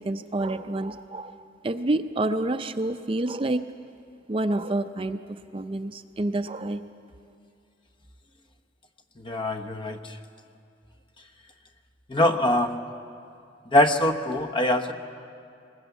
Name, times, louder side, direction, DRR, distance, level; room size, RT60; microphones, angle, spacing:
voice 1, 0.0-3.7 4.3-6.8, right 2 dB, 30° right, 9 dB, 0.5 m, -28 dB
voice 2, 9.2-10.2 12.1-12.7 13.7-14.9, left 1 dB, 25° left, 7 dB, 1.0 m, -23 dB
20.0 x 19.5 x 8.1 m, 2.5 s
head